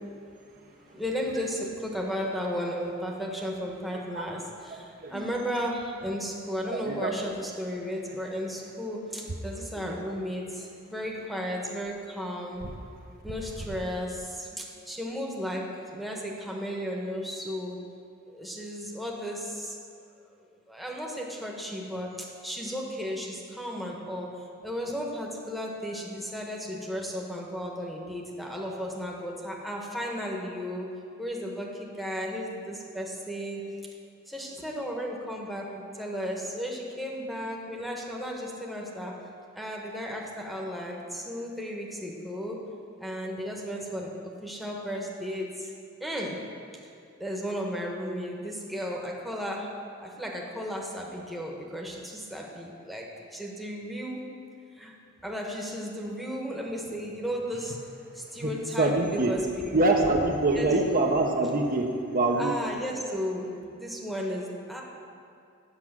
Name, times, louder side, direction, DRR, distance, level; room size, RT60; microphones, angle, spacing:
voice 1, 0.9-12.6 13.2-15.6 15.9-17.8 18.3-19.7 20.7-24.3 24.6-30.9 31.2-33.6 34.3-39.1 39.5-42.6 43.0-45.7 46.0-46.4 47.2-49.7 50.0-53.1 53.3-54.2 54.8-54.9 55.2-57.8 58.1-59.7 60.5-61.0 62.4-64.8, equal, ahead, -2 dB, 1.1 m, -34 dB
voice 2, 6.7-7.1 58.4-58.5 58.8-59.3 59.7-62.5, right 2 dB, 40° right, 1 dB, 0.7 m, -24 dB
8.1 x 5.9 x 7.3 m, 2.4 s
head